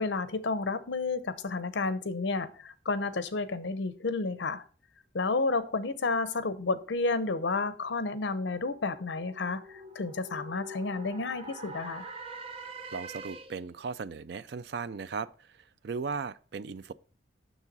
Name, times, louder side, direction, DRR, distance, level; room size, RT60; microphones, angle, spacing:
voice 1, 0.0-4.6 5.1-12.1, left 3 dB, 75° left, 0.7 m, -31 dB
sound 1, 7.8-13.8, right 2 dB, 30° right, 0.8 m, -45 dB
voice 2, 12.9-16.9, right 5 dB, 60° right, 0.4 m, -37 dB
7.2 x 6.5 x 4.0 m
head